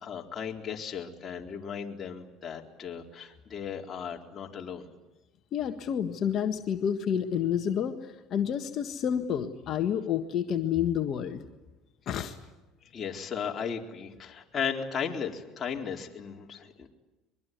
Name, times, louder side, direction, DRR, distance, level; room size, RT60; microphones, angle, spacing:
voice 1, 0.0-4.9 12.9-16.9, left 7 dB, 35° left, 1 dB, 4.2 m, -36 dB
voice 2, 5.5-11.4 12.1-12.4, left 8 dB, 50° left, 6 dB, 1.6 m, -29 dB
23.5 x 23.5 x 9.5 m, 1.1 s
supercardioid pair, 90°, 0 cm